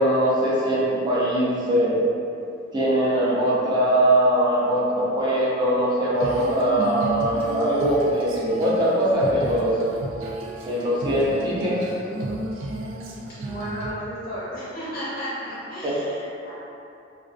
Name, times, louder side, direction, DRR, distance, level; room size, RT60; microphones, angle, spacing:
voice 1, 0.0-1.9 2.7-9.7 10.7-11.8 15.8-15.9, right 1 dB, 25° right, -8 dB, 0.5 m, -21 dB
Female singing, 6.1-13.9, right 2 dB, 80° right, 0.3 m, -33 dB
voice 2, 13.4-16.5, equal, 50° left, -10 dB, 0.5 m, -33 dB
2.3 x 2.3 x 2.4 m, 2.7 s
head